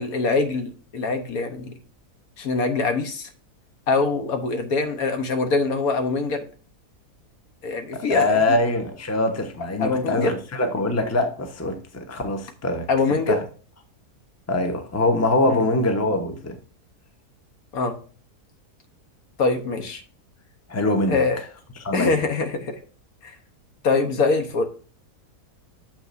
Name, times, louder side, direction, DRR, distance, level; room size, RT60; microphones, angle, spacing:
voice 1, 0.0-1.7 2.4-3.3 3.9-6.4 7.6-8.6 9.8-10.3 12.9-13.4 15.5-15.6 17.7-17.9 19.4-20.0 21.1-21.4 21.9-22.8 23.2-23.3 23.8-24.7, left 3 dB, 65° left, 1.5 m, -23 dB
voice 2, 7.9-12.9 13.3-13.4 14.5-16.6 20.7-21.2 21.8-22.1, left 2 dB, 10° left, 0.9 m, -23 dB
8.8 x 7.2 x 2.6 m
omnidirectional pair, 1.7 m